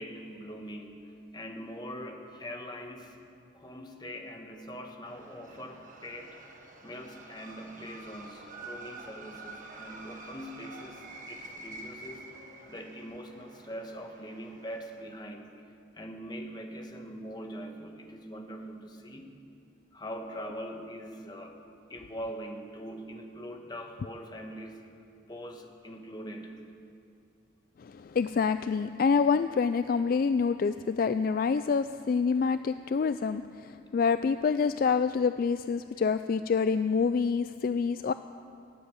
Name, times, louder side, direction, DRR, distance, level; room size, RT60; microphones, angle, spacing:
voice 1, 0.0-3.2 3.5-6.4 6.8-12.3 12.7-15.6 15.9-19.4 19.9-21.6 21.9-25.0 25.3-26.6, equal, 25° left, 3 dB, 1.3 m, -42 dB
sound 1, 5.1-15.0, right 2 dB, 45° right, 1.5 m, -48 dB
voice 2, 27.8-38.1, left 5 dB, 50° left, 11 dB, 0.3 m, -27 dB
16.5 x 8.2 x 9.6 m, 2.4 s
head